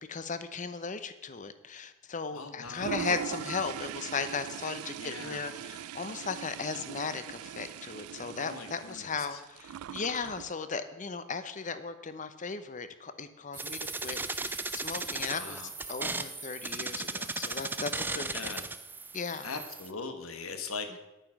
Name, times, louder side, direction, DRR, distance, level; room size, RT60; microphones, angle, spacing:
voice 1, 0.1-15.6 15.9-18.6 19.1-19.5, left 5 dB, 35° left, 11 dB, 0.8 m, -37 dB
voice 2, 2.3-3.0 5.0-5.4 8.4-9.4 15.1-15.7 18.1-18.7 19.4-21.0, left 4 dB, 75° left, 7 dB, 1.4 m, -41 dB
Toilet flush, 2.6-10.5, right 9 dB, 85° right, 0.3 m, -41 dB
sound 1, 13.5-19.9, right 3 dB, 10° right, 0.4 m, -36 dB
10.0 x 9.0 x 5.9 m, 1.0 s
head